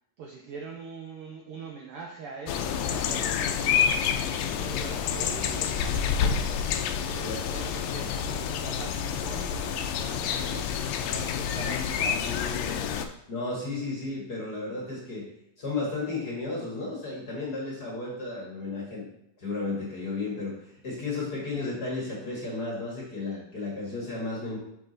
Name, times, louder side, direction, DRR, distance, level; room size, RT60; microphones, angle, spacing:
voice 1, 0.2-3.9 4.5-6.6 7.0-12.6, right 4 dB, 85° right, 1 dB, 1.2 m, -42 dB
sound 1, 2.5-13.1, left 7 dB, 80° left, 1.5 m, -28 dB
voice 2, 13.3-15.3 15.6-19.1 19.4-24.6, left 3 dB, 45° left, -4 dB, 1.5 m, -33 dB
5.8 x 4.9 x 3.9 m, 0.81 s
omnidirectional pair, 3.3 m